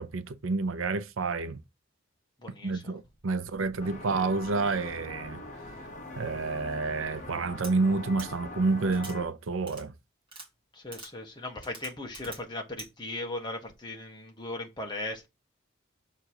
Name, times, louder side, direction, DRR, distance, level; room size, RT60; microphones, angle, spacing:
voice 1, 0.0-1.6 2.6-5.4 6.2-9.9, right 3 dB, 80° right, 0.6 m, -29 dB
voice 2, 2.4-3.0 10.7-15.3, left 2 dB, 20° left, 1.5 m, -38 dB
sound 1, 3.8-9.3, left 2 dB, 40° left, 1.5 m, -42 dB
sound 2, 7.6-7.7 8.2-8.3 8.9-9.2 9.7-9.8 10.3-10.5 10.9-11.1 11.6-12.4 12.8-12.9, right 3 dB, 25° right, 2.2 m, -44 dB
6.5 x 3.7 x 4.8 m
head